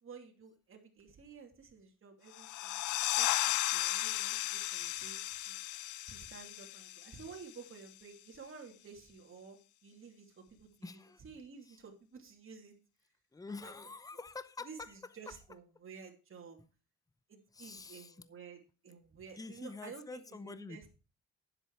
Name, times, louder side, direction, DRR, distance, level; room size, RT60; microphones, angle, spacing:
voice 1, 0.0-2.9 3.2-3.4 3.7-5.6 6.1-12.7 13.5-13.7 14.6-16.6 17.3-20.9, right 5 dB, 45° right, 2.8 m, -52 dB
sound 1, 2.3-7.7, left 17 dB, 80° left, 0.5 m, -35 dB
voice 2, 10.8-11.2 11.6-11.8 13.3-15.4 17.5-18.3 19.4-20.9, left 4 dB, 10° left, 0.7 m, -47 dB
10.0 x 7.8 x 4.7 m
cardioid pair, 90°, 30 cm